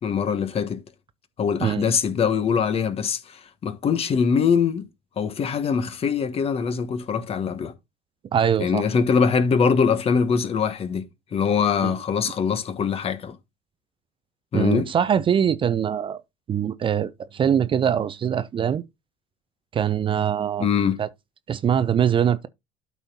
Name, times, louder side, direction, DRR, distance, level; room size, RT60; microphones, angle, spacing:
voice 1, 0.0-0.8 1.4-4.8 5.2-7.7 8.6-13.3 14.5-14.9 20.6-21.0, left 6 dB, 40° left, 1.2 m, -23 dB
voice 2, 1.6-1.9 8.3-8.8 11.8-11.9 14.5-16.2 16.5-18.8 19.7-20.7 21.0-21.1 21.5-22.5, right 8 dB, 35° right, 0.5 m, -22 dB
12.0 x 4.2 x 2.8 m
hypercardioid pair, 70°, 16 cm